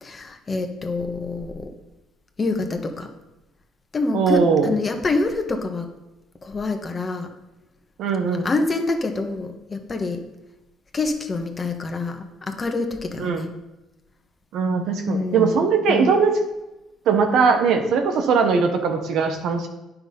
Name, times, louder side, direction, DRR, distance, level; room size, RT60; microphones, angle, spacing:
voice 1, 0.0-1.7 2.4-3.1 3.9-5.9 6.4-7.3 8.4-10.2 10.9-13.5 15.1-15.6 15.9-16.2, left 3 dB, 30° left, 5 dB, 1.4 m, -26 dB
voice 2, 4.1-4.7 8.0-8.5 13.2-13.4 14.5-16.3 17.1-19.7, right 5 dB, 70° right, 5 dB, 1.2 m, -20 dB
9.1 x 6.0 x 5.4 m, 0.99 s
supercardioid pair, 70°, 0 cm